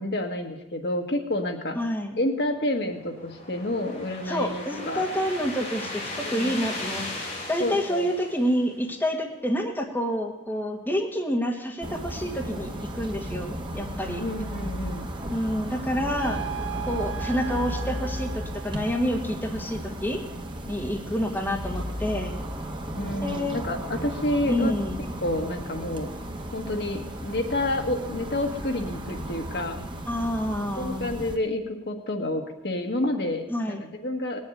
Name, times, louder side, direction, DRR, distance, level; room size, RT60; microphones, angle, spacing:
voice 1, 0.0-1.8 2.2-5.1 6.2-6.5 7.6-8.1 14.2-15.1 23.0-24.7 25.2-26.1 26.5-29.8 30.8-34.4, left 1 dB, 60° left, 4 dB, 1.6 m, -29 dB
voice 2, 1.7-2.2 4.2-7.1 7.5-14.2 15.3-16.4 16.9-20.2 20.7-22.3 23.2-23.6 24.5-25.0 30.1-31.1 33.5-33.8, equal, 10° left, 1 dB, 1.6 m, -28 dB
sound 1, 2.5-9.0, left 2 dB, 40° left, 4.3 m, -37 dB
sound 2, 11.8-31.4, equal, 25° right, 1.2 m, -35 dB
sound 3, 16.2-19.4, right 11 dB, 85° right, 0.8 m, -37 dB
19.0 x 7.3 x 9.1 m, 0.98 s
head